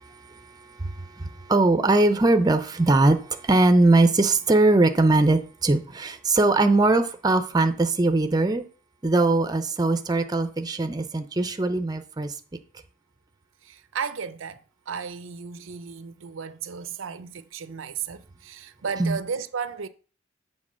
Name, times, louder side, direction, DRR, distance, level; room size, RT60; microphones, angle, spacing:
voice 1, 0.3-8.6 9.0-12.3 19.0-19.2, right 2 dB, 20° right, 0.6 m, -21 dB
voice 2, 13.6-19.9, right 6 dB, 85° right, 0.6 m, -34 dB
7.6 x 3.8 x 6.2 m
head